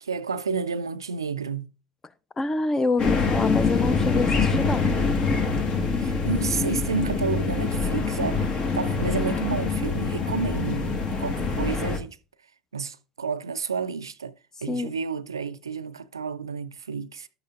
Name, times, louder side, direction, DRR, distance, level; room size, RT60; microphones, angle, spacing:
voice 1, 0.0-1.7 6.0-12.2 12.7-14.3 14.6-17.3, right 5 dB, 85° right, 0.3 m, -31 dB
voice 2, 2.4-4.9 14.7-14.9, left 3 dB, 20° left, 0.7 m, -26 dB
sound 1, 3.0-12.0, left 4 dB, 40° left, 1.4 m, -25 dB
11.5 x 8.4 x 2.4 m
figure-of-eight pair, 70°, 2 cm